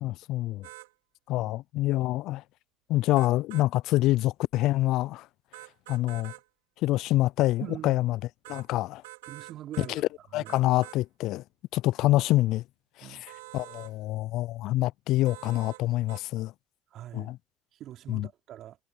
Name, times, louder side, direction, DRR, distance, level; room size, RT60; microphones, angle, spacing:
voice 1, 0.0-0.7 1.3-2.4 2.9-5.3 5.9-6.3 6.8-8.2 8.5-9.0 9.8-11.4 11.7-12.6 13.0-13.1 13.5-16.5 17.1-17.4 18.1-18.3, left 16 dB, 65° left, 0.4 m, -26 dB
sound 1, 0.6-0.9 3.1-3.7 5.5-6.4 8.4-8.7 9.0-9.9 10.4-11.0 13.3-13.9 15.2-15.8 16.1-16.2, right 21 dB, 80° right, 3.8 m, -46 dB
voice 2, 7.6-8.0 9.3-10.1 10.3-10.6 13.0-13.2 16.9-17.3 17.8-18.8, right 12 dB, 55° right, 3.5 m, -42 dB
hypercardioid pair, 65°, 0 cm